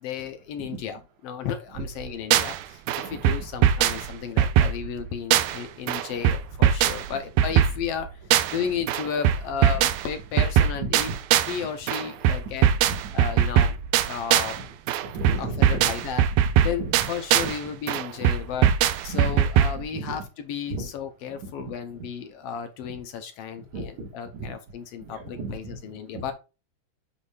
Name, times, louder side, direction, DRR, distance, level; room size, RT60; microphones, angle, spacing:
voice 1, 0.0-8.2 8.5-11.1 11.5-12.7 13.1-13.8 14.1-14.6 15.4-16.3 16.6-18.7 19.0-26.3, left 7 dB, 75° left, 1.5 m, -33 dB
sound 1, 1.8-2.6 2.9-5.6 5.9-8.6 8.9-11.6 11.9-14.6 14.9-17.6 17.9-19.8, right 10 dB, 90° right, 2.0 m, -22 dB
voice 2, 3.0-3.3 3.9-4.0 10.3-10.5 10.7-11.1 12.6-13.4 15.1-15.9 16.4-16.5 16.8-17.1 17.4-17.5 19.1-19.4 19.9-20.1 20.7-20.9 21.3-21.7 23.6-24.1 24.3-24.5 25.0-26.3, right 3 dB, 70° right, 3.0 m, -36 dB
8.1 x 5.1 x 2.4 m
omnidirectional pair, 3.4 m